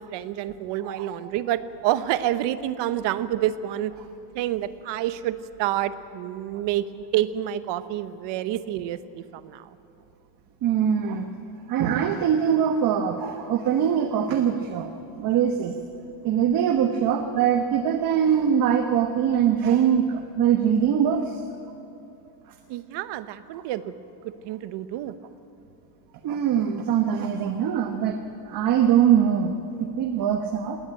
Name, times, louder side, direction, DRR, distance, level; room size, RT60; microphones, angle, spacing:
voice 1, 0.0-3.9 4.3-9.8 17.7-17.8 22.7-23.9 24.4-25.1, right 12 dB, 70° right, 13 dB, 1.0 m, -28 dB
voice 2, 10.6-11.3 11.7-14.9 15.2-15.8 16.2-21.4 22.5-22.6 26.2-28.2 28.4-30.8, right 8 dB, 50° right, 5 dB, 1.2 m, -22 dB
19.0 x 18.5 x 9.0 m, 2.8 s
cardioid pair, 155°, 44 cm